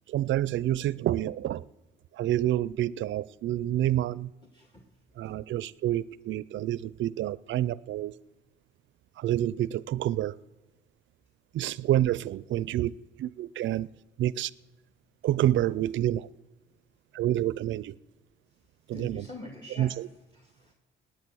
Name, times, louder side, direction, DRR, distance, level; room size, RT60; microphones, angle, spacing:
voice 1, 0.1-1.6 2.1-4.3 5.2-8.1 9.2-10.4 11.5-12.9 13.2-13.9 14.2-14.5 15.2-16.3 17.1-17.9 18.9-19.3 19.7-20.1, right 13 dB, 70° right, 21 dB, 0.5 m, -28 dB
voice 2, 4.5-4.8 18.9-19.9 20.4-20.7, left 2 dB, 20° left, 3 dB, 1.9 m, -44 dB
19.0 x 9.2 x 6.3 m, 1.2 s
cardioid pair, 90°, 20 cm